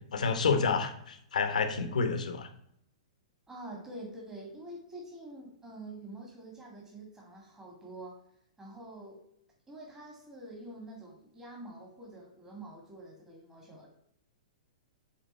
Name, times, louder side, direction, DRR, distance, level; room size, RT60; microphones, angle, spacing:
voice 1, 0.1-2.5, left 5 dB, 85° left, 7 dB, 1.1 m, -29 dB
voice 2, 3.5-8.2 8.6-9.2 9.7-13.9, right 1 dB, 15° right, -1 dB, 1.9 m, -46 dB
8.7 x 3.6 x 4.4 m, 0.72 s
hypercardioid pair, 130°, 4 cm